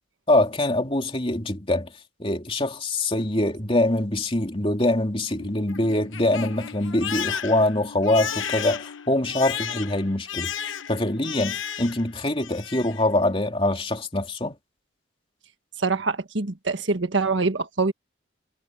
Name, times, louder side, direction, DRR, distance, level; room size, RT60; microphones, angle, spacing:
voice 1, 0.3-1.9 2.2-14.5, left 1 dB, 30° left, 2.9 m, -24 dB
Crying sobbing, 5.1-12.1 12.4-13.0, left 8 dB, 75° left, 1.0 m, -34 dB
voice 2, 15.8-17.9, right 3 dB, 65° right, 1.6 m, -24 dB
head